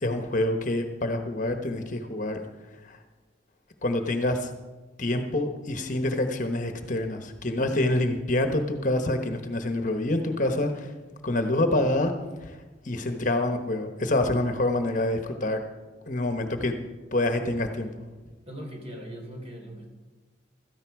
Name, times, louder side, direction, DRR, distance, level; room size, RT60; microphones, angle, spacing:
voice 1, 0.0-2.4 2.8-3.0 3.8-4.5 5.0-10.9 11.2-12.1 12.4-12.6 12.8-15.6 16.1-16.7 17.1-17.9, left 1 dB, 40° left, 6 dB, 1.1 m, -26 dB
voice 2, 18.5-19.9, equal, 30° right, 1 dB, 3.3 m, -40 dB
16.5 x 13.5 x 4.7 m, 1.2 s
head